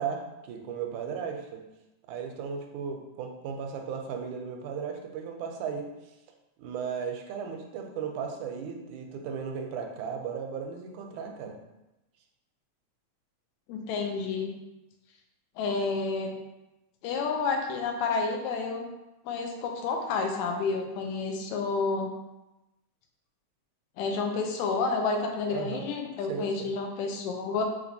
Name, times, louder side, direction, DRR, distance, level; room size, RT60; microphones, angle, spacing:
voice 1, 0.0-1.6 2.1-5.9 6.6-11.6 25.5-25.9 26.3-26.7, right 6 dB, 85° right, 3 dB, 2.0 m, -35 dB
voice 2, 13.7-14.5 15.6-16.4 17.0-18.9 19.3-22.1 24.0-27.6, left 4 dB, 80° left, 3 dB, 1.9 m, -30 dB
5.0 x 3.0 x 2.7 m, 0.97 s
omnidirectional pair, 3.4 m